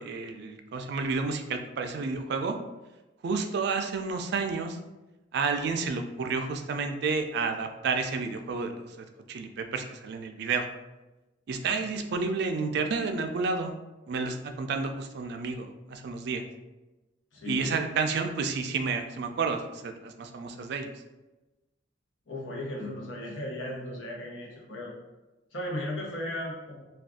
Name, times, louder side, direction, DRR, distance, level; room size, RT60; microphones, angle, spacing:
voice 1, 0.0-2.6 3.2-4.8 5.3-10.6 11.5-13.7 14.1-16.4 17.5-20.9, right 4 dB, 60° right, 6 dB, 0.3 m, -30 dB
voice 2, 17.3-17.8 22.3-24.9 25.5-26.8, left 1 dB, 80° left, -3 dB, 0.8 m, -36 dB
2.4 x 2.3 x 3.6 m, 1.1 s
head